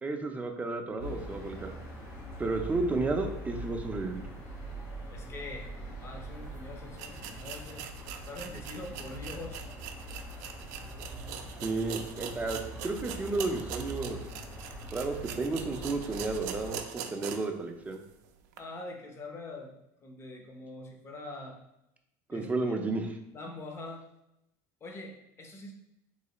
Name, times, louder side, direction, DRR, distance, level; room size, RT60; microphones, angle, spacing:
voice 1, 0.0-1.7 2.4-4.3 11.6-14.2 14.9-18.0 22.3-23.2, right 3 dB, 15° right, 4 dB, 0.4 m, -32 dB
sound 1, 1.0-16.8, right 1 dB, 90° left, 1.4 m, -43 dB
voice 2, 5.1-5.7 6.0-7.9 8.3-9.7 18.6-19.7 20.0-21.6 22.3-22.7 23.3-24.0 24.8-25.7, left 2 dB, 25° left, 2 dB, 0.6 m, -43 dB
sound 2, 6.4-6.5 6.9-17.6 17.9-18.0 18.5-18.6, right 9 dB, 80° right, 0.4 m, -43 dB
3.1 x 3.1 x 2.9 m, 0.84 s
supercardioid pair, 125°, 9 cm